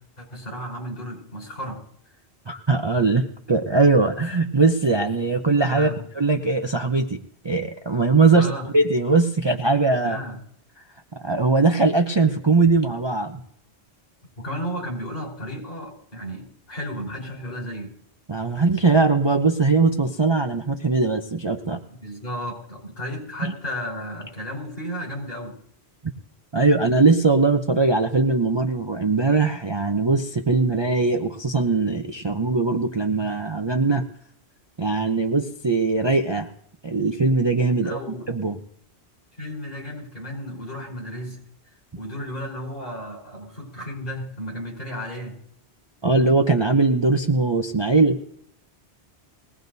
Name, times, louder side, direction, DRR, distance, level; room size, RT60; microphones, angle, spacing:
voice 1, 0.2-1.8 5.7-6.0 8.3-8.7 10.0-10.4 14.4-18.0 22.0-25.6 37.8-38.3 39.4-41.4 42.0-45.4, equal, 60° left, -2 dB, 5.2 m, -33 dB
voice 2, 2.5-5.9 6.2-8.5 8.7-10.2 11.2-13.4 18.3-21.8 23.4-23.5 26.5-34.1 34.8-36.5 36.8-38.0 38.3-38.6 46.0-48.2, right 3 dB, 30° right, 4 dB, 0.5 m, -20 dB
20.5 x 17.5 x 2.7 m, 0.68 s
omnidirectional pair, 1.1 m